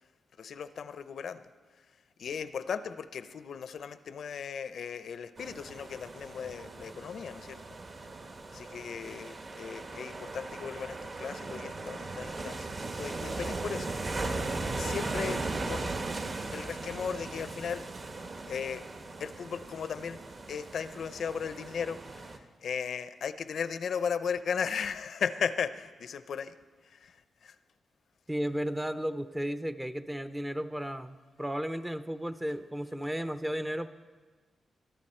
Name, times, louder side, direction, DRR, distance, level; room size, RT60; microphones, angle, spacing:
voice 1, 0.4-1.5 2.2-7.6 8.5-12.7 13.0-13.9 14.8-16.0 16.5-17.8 18.5-18.8 19.2-20.2 20.5-22.3 22.6-26.5 26.9-27.2 27.4-27.5, left 6 dB, 65° left, 12 dB, 0.6 m, -36 dB
sound 1, 5.4-22.4, right 3 dB, 35° right, 1.1 m, -38 dB
voice 2, 28.3-33.9, equal, 10° right, 11 dB, 0.6 m, -34 dB
23.5 x 12.5 x 4.4 m, 1.4 s
wide cardioid pair, 160°, 0 cm